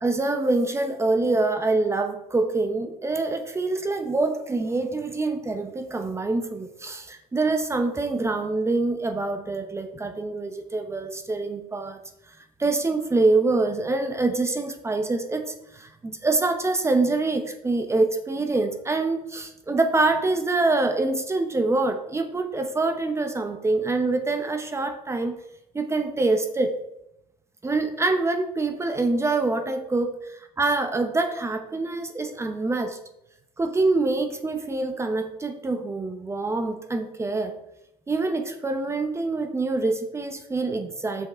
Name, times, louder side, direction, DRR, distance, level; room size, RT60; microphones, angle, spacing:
voice 1, 0.0-12.0 12.6-25.3 25.7-26.7 27.6-30.1 30.6-33.0 33.6-37.5 38.1-41.3, right 3 dB, 20° right, 7 dB, 0.8 m, -25 dB
6.4 x 5.6 x 4.3 m, 0.85 s
supercardioid pair, 90°, 14 cm